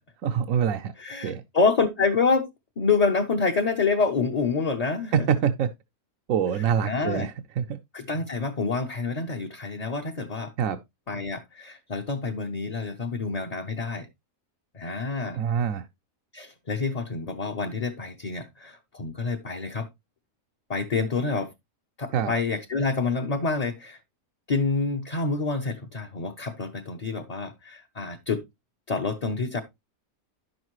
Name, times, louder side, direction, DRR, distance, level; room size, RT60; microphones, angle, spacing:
voice 1, 0.2-0.9 1.2-1.4 5.1-5.7 6.3-7.8 10.6-10.8 15.3-15.9 22.1-22.3, right 8 dB, 70° right, 1.0 m, -25 dB
voice 2, 1.0-2.5 2.8-5.3 6.8-7.3 7.9-10.5 11.1-14.1 14.7-15.4 16.3-19.9 20.7-21.5 22.0-24.0 24.5-28.4 28.9-29.6, left 4 dB, 35° left, 0.8 m, -27 dB
10.5 x 6.5 x 3.0 m
omnidirectional pair, 1.6 m